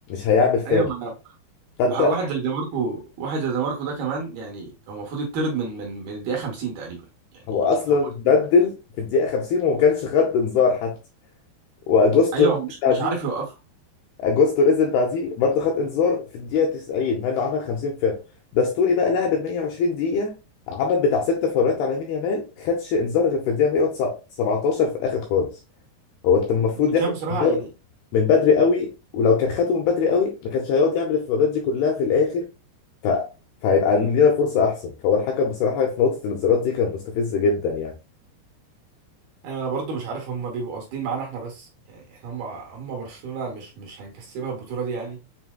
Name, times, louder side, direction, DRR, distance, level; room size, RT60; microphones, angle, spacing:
voice 1, 0.1-0.8 1.8-2.1 7.5-11.0 11.9-12.5 12.8-13.2 14.2-18.2 18.5-20.4 20.7-25.5 26.2-27.0 27.4-27.6 28.1-32.5 33.0-33.3 33.6-37.9, left 5 dB, 80° left, 2.3 m, -21 dB
voice 2, 0.7-1.1 1.9-7.1 7.9-8.0 12.3-13.6 26.8-27.7 39.4-45.2, right 4 dB, 70° right, 2.7 m, -29 dB
7.3 x 2.7 x 2.2 m
omnidirectional pair, 5.2 m